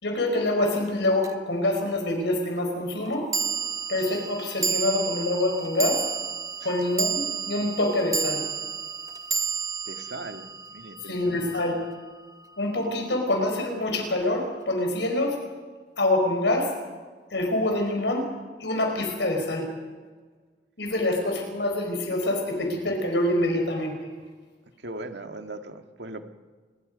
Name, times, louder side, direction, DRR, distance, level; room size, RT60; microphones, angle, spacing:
voice 1, 0.0-3.3 3.9-6.0 6.6-8.4 11.1-11.7 12.6-15.4 16.0-16.7 17.3-18.2 18.6-19.7 20.8-23.9, left 1 dB, 90° left, 3 dB, 4.8 m, -25 dB
sound 1, 1.2-1.3 3.3-11.8, right 5 dB, 20° right, 0.8 m, -31 dB
voice 2, 9.8-11.5 24.8-26.2, right 2 dB, 85° right, 6 dB, 1.7 m, -39 dB
27.0 x 21.5 x 5.3 m, 1.4 s
head